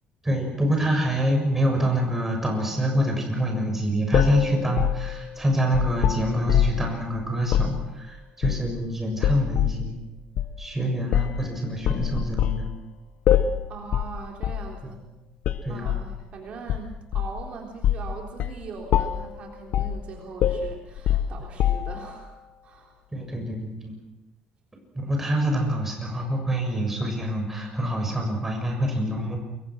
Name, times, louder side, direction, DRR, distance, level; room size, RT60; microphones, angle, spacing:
voice 1, 0.2-10.0 10.6-12.7 15.6-15.9 23.1-23.9 24.9-29.4, equal, 10° right, 2 dB, 7.0 m, -26 dB
sound 1, 4.1-6.9 7.4-7.8 8.4-8.8 9.2-9.8 10.4-10.5 11.1-11.4 11.8-12.6 13.3-13.6 13.9-14.1 14.4-14.7 15.4-16.1 16.7-17.4 17.8-18.1 18.4-18.6 18.9-19.3 19.7-20.0 20.4-22.1, left 10 dB, 60° left, 1.3 m, -24 dB
voice 2, 13.7-15.0 15.7-23.0, right 4 dB, 45° right, 1 dB, 3.8 m, -41 dB
29.5 x 23.0 x 6.2 m, 0.89 s
cardioid pair, 150°, 3 cm